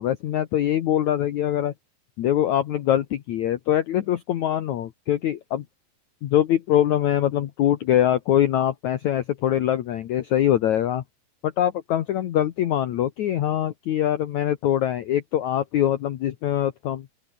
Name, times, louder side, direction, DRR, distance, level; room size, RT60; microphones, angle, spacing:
voice 1, 0.0-1.7 2.2-5.6 6.2-11.0 11.4-17.1, left 11 dB, 65° left, 2.0 m, -23 dB
open air
omnidirectional pair, 4.5 m